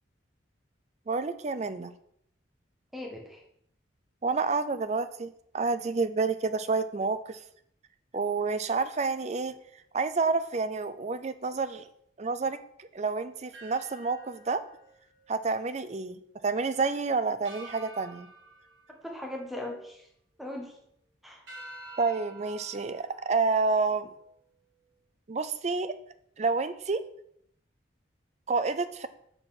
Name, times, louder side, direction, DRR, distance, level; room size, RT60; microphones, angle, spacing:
voice 1, 1.1-1.9 4.2-7.4 8.1-9.5 9.9-11.9 12.2-14.6 15.3-18.3 22.0-24.1 25.3-25.9 26.4-27.0 28.5-29.1, right 4 dB, 35° right, 12 dB, 0.4 m, -29 dB
voice 2, 2.9-3.4 19.0-20.1 20.4-20.8 21.2-21.4, left 1 dB, ahead, 0 dB, 1.2 m, -39 dB
sound 1, 13.5-16.0 16.3-16.5 17.4-20.0 20.4-20.9 21.5-24.3, right 2 dB, 70° right, 1.8 m, -50 dB
6.8 x 4.1 x 5.8 m, 0.70 s
head